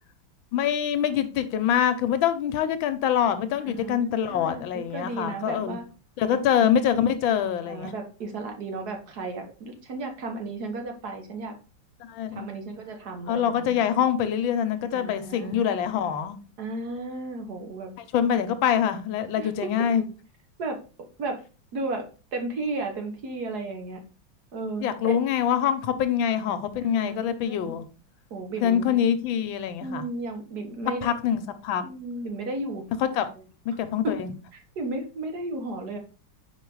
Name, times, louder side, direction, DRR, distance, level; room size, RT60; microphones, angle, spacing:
voice 1, 0.5-5.8 6.2-7.9 12.0-12.5 13.3-16.4 18.1-20.0 24.8-27.8 28.6-30.0 31.0-31.8 33.0-33.3 33.6-34.3, left 9 dB, 85° left, 1.5 m, -25 dB
voice 2, 3.6-5.8 6.3-6.7 7.6-11.5 12.3-13.9 14.9-15.8 16.6-17.9 19.4-19.7 20.0-20.1 20.6-20.8 21.2-21.4 21.7-22.1 22.3-24.0 24.5-25.2 26.8-27.8 28.3-29.0 29.8-31.1 31.8-32.8 34.0-34.1 34.8-36.0, right 2 dB, 55° right, 1.6 m, -34 dB
4.9 x 4.8 x 4.6 m
omnidirectional pair, 2.1 m